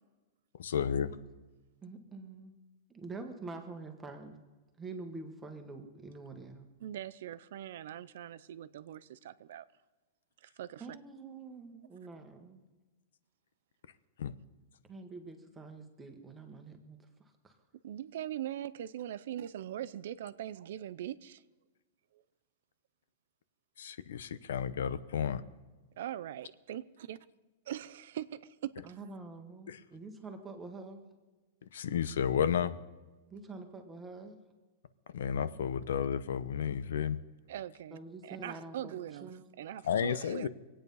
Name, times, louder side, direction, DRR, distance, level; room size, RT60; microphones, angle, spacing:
voice 1, 0.6-1.1 14.2-14.3 23.8-25.4 29.7-29.8 31.7-32.8 35.1-37.2 39.8-40.5, left 8 dB, 85° left, 0.8 m, -32 dB
voice 2, 1.8-2.5 2.9-4.4 4.8-6.7 10.8-12.6 14.9-17.6 28.8-31.0 33.3-34.4 37.9-39.5, right 3 dB, 10° right, 1.2 m, -46 dB
voice 3, 6.8-9.7 10.4-10.9 17.8-21.4 26.0-26.8 27.1-27.2 27.7-29.0 37.5-38.0 38.2-40.5, right 11 dB, 55° right, 0.5 m, -41 dB
24.0 x 9.0 x 5.4 m
supercardioid pair, 180°, 0 cm